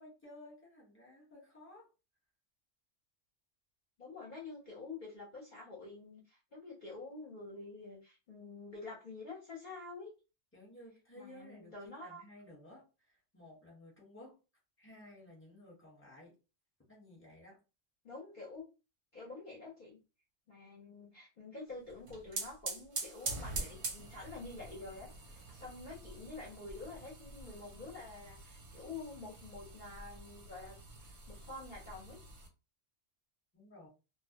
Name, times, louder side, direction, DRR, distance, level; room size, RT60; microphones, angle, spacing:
voice 1, 0.0-1.9 10.5-14.4 14.8-16.4 16.9-17.6 33.5-33.9, left 1 dB, 10° left, -3 dB, 0.9 m, -55 dB
voice 2, 4.0-10.1 11.1-12.2 18.0-18.6 19.1-20.0 20.5-32.2, left 3 dB, 50° left, -3 dB, 0.7 m, -48 dB
sound 1, 21.9-32.5, right 3 dB, 55° right, 0.7 m, -45 dB
2.2 x 2.1 x 2.8 m, 0.30 s
omnidirectional pair, 1.3 m